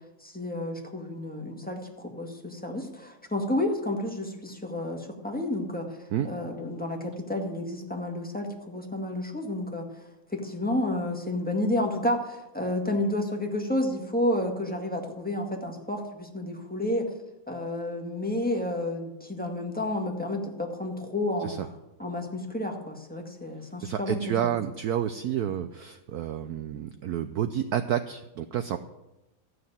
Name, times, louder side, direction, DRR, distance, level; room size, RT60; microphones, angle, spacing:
voice 1, 0.2-5.9 6.2-9.8 10.3-17.1 17.5-21.5 22.0-24.5, left 1 dB, 5° left, 1 dB, 1.6 m, -30 dB
voice 2, 23.8-28.8, right 10 dB, 70° right, 10 dB, 0.9 m, -30 dB
13.5 x 6.5 x 9.1 m, 0.96 s
omnidirectional pair, 2.1 m